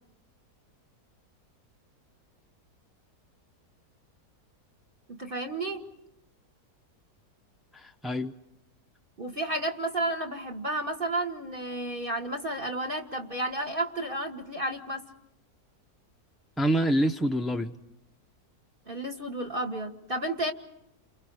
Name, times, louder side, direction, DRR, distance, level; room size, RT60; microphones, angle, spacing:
voice 1, 5.1-5.8 9.2-15.0 18.9-20.5, right 1 dB, 35° right, 4 dB, 2.1 m, -32 dB
voice 2, 7.7-8.3 16.6-17.8, right 1 dB, ahead, 4 dB, 0.3 m, -26 dB
29.0 x 28.0 x 4.9 m, 0.86 s
omnidirectional pair, 1.7 m